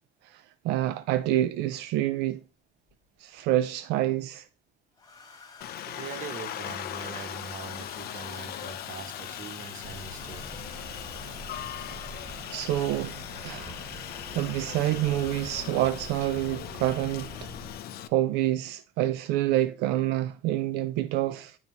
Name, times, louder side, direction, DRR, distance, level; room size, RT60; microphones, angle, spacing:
voice 1, 0.2-2.4 3.2-4.5 11.9-12.0 12.5-13.8 14.3-17.5 18.1-21.6, right 14 dB, 90° right, 0.4 m, -27 dB
Domestic sounds home sounds, 2.9-3.5 5.0-15.7 17.0-17.2 17.5-17.8, left 4 dB, 20° left, 1.4 m, -49 dB
Aircraft, 5.6-18.1, left 11 dB, 65° left, 0.6 m, -39 dB
voice 2, 5.9-10.5 17.9-18.1, right 5 dB, 50° right, 1.1 m, -42 dB
sound 1, 9.8-17.8, right 1 dB, 30° right, 3.1 m, -45 dB
10.5 x 4.0 x 2.9 m
cardioid pair, 110°, 17 cm